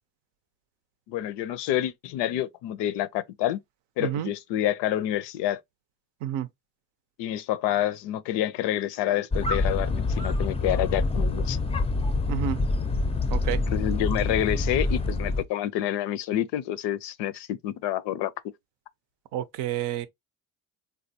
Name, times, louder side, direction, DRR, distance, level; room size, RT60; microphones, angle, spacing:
voice 1, 1.1-3.6 4.0-5.6 7.2-11.6 13.7-18.3, left 12 dB, 80° left, 0.5 m, -28 dB
voice 2, 4.0-4.3 6.2-6.5 12.3-12.6 13.3-13.6 19.3-20.1, right 11 dB, 80° right, 0.6 m, -29 dB
sound 1, 9.3-15.4, left 3 dB, 15° left, 0.4 m, -26 dB
3.4 x 2.3 x 2.6 m
supercardioid pair, 65°, 42 cm